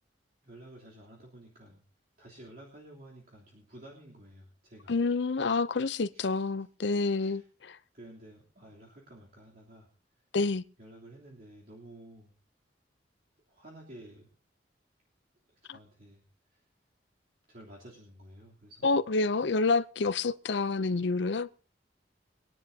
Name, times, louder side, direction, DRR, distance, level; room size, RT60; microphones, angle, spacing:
voice 1, 0.4-1.8 2.2-4.9 6.1-6.4 7.2-7.5 7.9-9.9 10.2-10.3 10.8-12.3 13.5-14.3 15.6-16.2 16.5-16.7 17.5-18.9 19.3-19.6, right 1 dB, 50° right, 3.3 m, -52 dB
voice 2, 4.9-7.8 10.3-10.6 15.7-15.8 18.8-21.5, left 3 dB, 75° left, 0.6 m, -28 dB
23.5 x 10.5 x 2.8 m
head